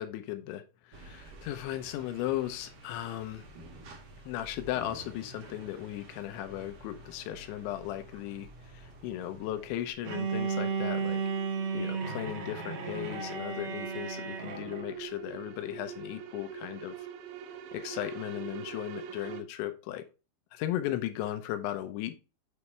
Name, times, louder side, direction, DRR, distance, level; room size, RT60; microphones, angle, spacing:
voice 1, 0.0-3.5 4.3-11.2 11.7-17.0 17.7-20.0 20.5-22.2, left 13 dB, 80° left, 9 dB, 3.0 m, -36 dB
sound 1, 0.9-9.9, right 2 dB, 55° right, 1.8 m, -50 dB
sound 2, 8.9-19.4, right 9 dB, 90° right, 3.3 m, -45 dB
Bowed string instrument, 10.1-14.9, right 5 dB, 75° right, 3.1 m, -34 dB
8.1 x 5.1 x 3.2 m, 0.31 s
omnidirectional pair, 5.5 m